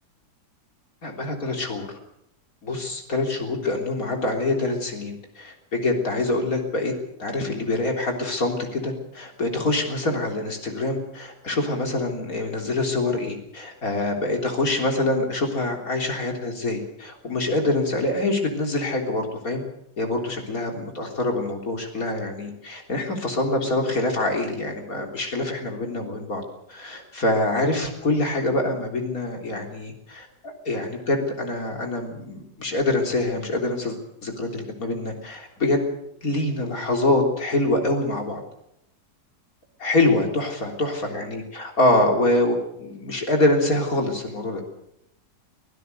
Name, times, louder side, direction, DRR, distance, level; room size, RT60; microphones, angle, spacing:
voice 1, 1.0-1.9 2.6-6.9 7.2-19.6 20.0-26.4 26.7-35.9 36.2-38.4 39.8-44.6, left 2 dB, 50° left, 2 dB, 4.0 m, -25 dB
25.0 x 16.0 x 6.8 m, 0.79 s
omnidirectional pair, 1.9 m